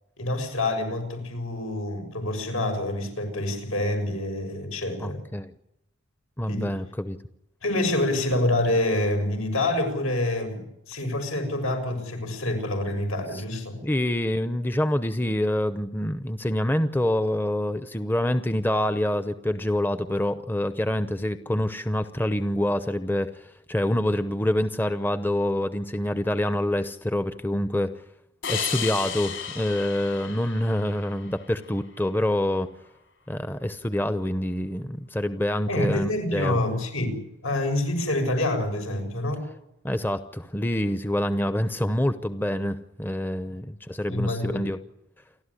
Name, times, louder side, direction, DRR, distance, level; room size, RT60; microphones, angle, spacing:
voice 1, 0.2-5.2 6.4-6.7 7.6-13.8 35.7-39.5 44.1-44.6, left 1 dB, 85° left, 5 dB, 6.8 m, -27 dB
voice 2, 5.0-5.5 6.4-7.2 13.8-27.9 28.5-32.7 33.3-36.6 39.8-44.8, left 1 dB, 10° left, 10 dB, 0.8 m, -26 dB
sound 1, 28.4-31.7, left 7 dB, 65° left, 5.5 m, -34 dB
29.0 x 12.5 x 9.9 m, 0.84 s
head